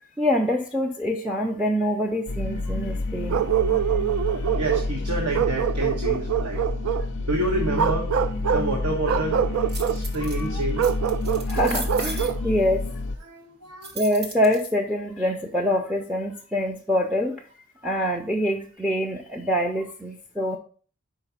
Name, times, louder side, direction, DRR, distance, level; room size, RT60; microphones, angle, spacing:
voice 1, 0.2-3.4 4.4-4.5 11.5-12.8 14.0-17.4 17.8-20.6, equal, 5° right, 1 dB, 0.5 m, -25 dB
sound 1, 2.3-13.2, left 2 dB, 55° left, 0.4 m, -29 dB
Bark, 3.3-4.9 5.3-7.1 7.7-8.7 9.0-10.0 10.8-12.4, right 9 dB, 70° right, 0.3 m, -25 dB
voice 2, 4.6-6.6 7.2-8.1 8.5-9.4 9.9-10.9 13.2-13.9, right 2 dB, 90° right, 0 dB, 1.3 m, -28 dB
sound 2, 9.7-10.4 10.8-12.3 13.8-14.7, right 3 dB, 45° right, 1.2 m, -35 dB
5.3 x 4.9 x 5.6 m, 0.42 s
head